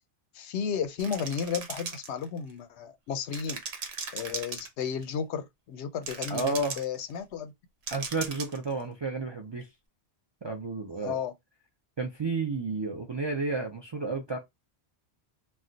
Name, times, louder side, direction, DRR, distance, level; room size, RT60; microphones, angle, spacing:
voice 1, 0.3-3.6 4.1-7.5 11.0-11.3, left 7 dB, 90° left, 0.9 m, -33 dB
sound 1, 1.0-2.5 3.3-5.0 6.0-7.0 7.9-8.7, right 5 dB, 75° right, 0.9 m, -37 dB
voice 2, 6.3-6.8 7.9-9.7 10.4-11.2 12.0-14.4, right 3 dB, 45° right, 0.3 m, -31 dB
2.3 x 2.1 x 3.7 m
omnidirectional pair, 1.1 m